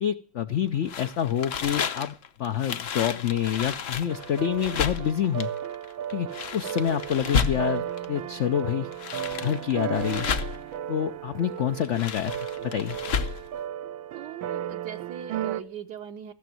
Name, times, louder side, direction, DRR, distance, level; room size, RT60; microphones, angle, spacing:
voice 1, 0.0-5.5 6.1-8.9 9.4-10.3 10.9-13.0, left 9 dB, 65° left, 8 dB, 0.7 m, -27 dB
sound 1, 0.9-8.1 8.7-10.7 11.7-13.5, left 6 dB, 50° left, 1.0 m, -32 dB
sound 2, 4.1-15.6, right 10 dB, 85° right, 1.6 m, -35 dB
voice 2, 14.1-16.3, right 9 dB, 65° right, 5 dB, 1.2 m, -40 dB
15.0 x 7.0 x 7.6 m, 0.43 s
omnidirectional pair, 2.1 m